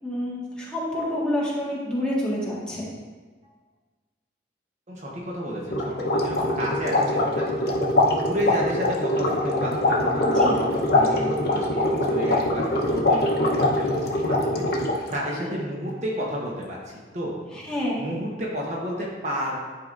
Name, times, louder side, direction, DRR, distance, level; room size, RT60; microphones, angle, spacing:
voice 1, 0.0-2.9 10.2-10.6 15.3-15.5 17.5-18.0, left 1 dB, 5° left, -7 dB, 1.6 m, -28 dB
voice 2, 4.9-17.3 18.0-19.6, equal, 45° right, -3 dB, 1.1 m, -32 dB
sound 1, 5.7-15.1, left 1 dB, 60° left, 0.9 m, -23 dB
10.5 x 4.8 x 2.5 m, 1.4 s
head